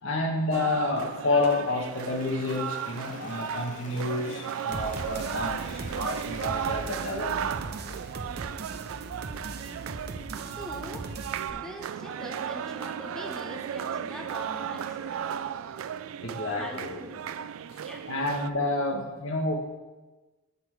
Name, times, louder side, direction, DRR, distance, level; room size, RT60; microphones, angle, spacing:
voice 1, 0.0-7.6 16.2-17.0 17.7-19.5, left 2 dB, 70° left, 3 dB, 1.2 m, -29 dB
sound 1, 0.5-18.5, right 8 dB, 85° right, 0.3 m, -35 dB
Applause, 1.5-8.7, left 2 dB, 35° left, 1.0 m, -49 dB
sound 2, 4.7-11.5, right 3 dB, 50° right, 0.6 m, -39 dB
voice 2, 10.3-11.1 11.5-15.3 16.6-17.2 17.8-18.1, equal, 5° left, 1 dB, 0.6 m, -43 dB
8.1 x 6.6 x 4.6 m, 1.2 s
head